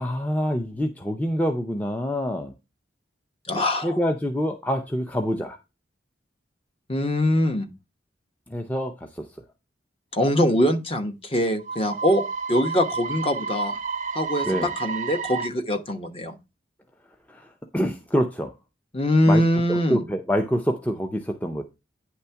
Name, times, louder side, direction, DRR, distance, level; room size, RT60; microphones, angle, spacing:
voice 1, 0.0-2.5 3.8-5.6 8.5-9.3 14.4-14.7 17.3-18.5 19.3-19.4 19.7-21.6, equal, 10° left, 0.6 m, -26 dB
voice 2, 3.5-4.0 6.9-7.7 10.1-13.8 14.1-16.4 18.9-20.0, left 1 dB, 30° left, 1.0 m, -23 dB
sound 1, 11.6-15.5, right 5 dB, 40° right, 0.5 m, -31 dB
9.6 x 3.5 x 5.6 m
head